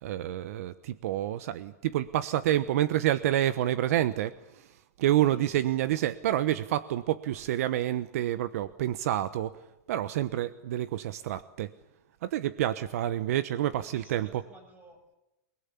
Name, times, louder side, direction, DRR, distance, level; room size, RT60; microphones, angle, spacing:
voice 1, 0.0-9.6 9.9-11.7 12.2-14.5, right 12 dB, 65° right, 14 dB, 1.1 m, -28 dB
voice 2, 5.1-6.0 12.6-13.3 13.7-15.2, right 1 dB, 20° right, 7 dB, 7.2 m, -57 dB
28.5 x 21.0 x 8.5 m, 0.93 s
supercardioid pair, 150°, 9 cm